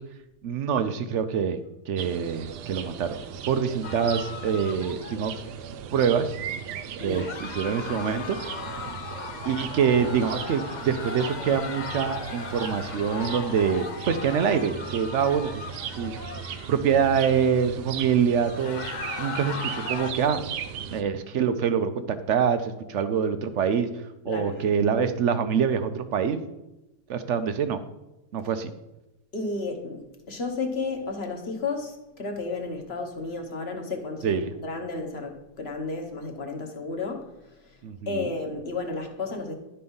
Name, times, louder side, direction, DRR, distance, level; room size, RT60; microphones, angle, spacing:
voice 1, 0.4-1.6 1.9-3.2 3.5-5.3 5.9-6.4 7.0-8.4 9.4-16.2 16.7-18.8 19.2-20.4 20.9-23.9 24.2-26.5 27.1-27.8 28.3-28.7 34.2-34.5 37.8-38.3, right 7 dB, 65° right, 10 dB, 0.7 m, -25 dB
sound 1, 2.0-21.0, right 8 dB, 90° right, 1.3 m, -38 dB
sound 2, 3.8-5.4 7.1-16.7 18.4-20.1, left 5 dB, 65° left, 0.4 m, -37 dB
voice 2, 24.3-24.6 29.3-37.2 37.6-37.8 38.0-39.5, left 3 dB, 40° left, 4 dB, 1.4 m, -32 dB
11.5 x 4.3 x 5.4 m, 0.95 s
omnidirectional pair, 1.7 m